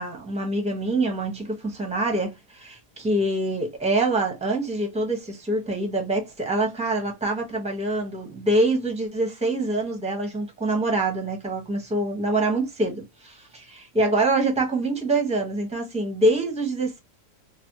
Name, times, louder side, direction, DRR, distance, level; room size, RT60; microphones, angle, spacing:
voice 1, 0.0-17.0, right 2 dB, 5° right, 0.6 m, -25 dB
3.3 x 2.2 x 2.8 m
omnidirectional pair, 1.8 m